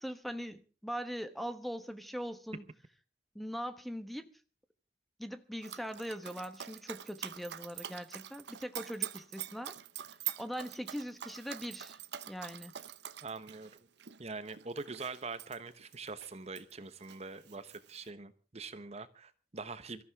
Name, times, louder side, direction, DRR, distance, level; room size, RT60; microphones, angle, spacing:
voice 1, 0.0-2.6 3.3-4.3 5.2-9.7 10.4-12.0 12.3-12.7, equal, ahead, 1.1 m, -41 dB
Dog, 5.6-16.7 17.0-18.1, right 11 dB, 70° right, 0.8 m, -45 dB
voice 2, 13.2-13.7 14.2-20.0, right 4 dB, 35° right, 1.0 m, -43 dB
24.0 x 14.5 x 3.6 m
head